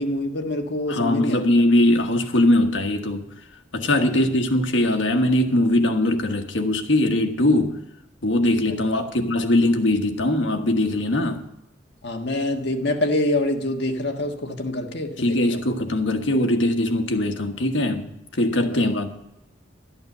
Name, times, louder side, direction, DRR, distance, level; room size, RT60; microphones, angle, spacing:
voice 1, 0.0-1.5 4.0-4.2 8.7-9.1 12.0-15.6 18.6-18.9, left 1 dB, 65° left, 1.5 m, -26 dB
voice 2, 0.9-3.3 3.7-7.8 8.2-11.4 15.2-19.1, left 1 dB, 90° left, 1.4 m, -21 dB
12.5 x 9.0 x 6.7 m
head